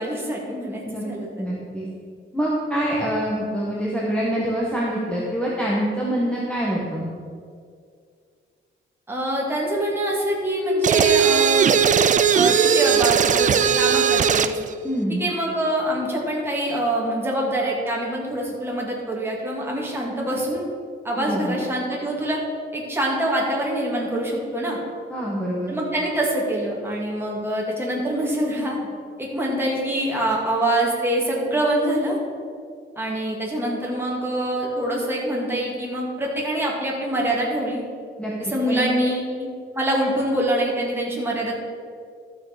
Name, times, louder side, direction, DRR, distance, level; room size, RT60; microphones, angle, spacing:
voice 1, 0.0-1.5 9.1-11.7 12.3-14.6 15.2-20.7 21.0-22.4 22.7-24.8 25.7-28.8 29.2-32.2 33.0-37.8 38.5-39.5 39.7-41.5, right 1 dB, 10° right, -4 dB, 2.2 m, -25 dB
voice 2, 1.4-1.9 2.3-7.1 14.8-15.3 21.1-21.6 25.1-25.7 38.2-38.3 38.7-39.0, equal, 5° left, -5 dB, 1.4 m, -25 dB
sound 1, 10.8-14.6, right 8 dB, 35° right, 0.4 m, -18 dB
12.5 x 6.4 x 5.1 m, 2.2 s
wide cardioid pair, 155°, 21 cm